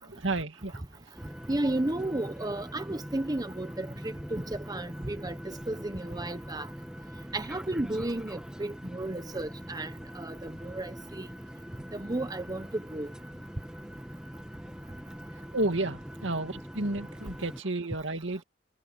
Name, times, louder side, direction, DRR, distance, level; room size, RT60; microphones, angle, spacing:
voice 1, 0.0-0.8 15.5-18.4, right 2 dB, 80° right, 2.3 m, -31 dB
sound 1, 1.2-17.6, equal, 5° right, 1.1 m, -43 dB
voice 2, 1.5-6.7 7.3-11.3 11.9-13.1, right 1 dB, 20° right, 1.0 m, -33 dB
head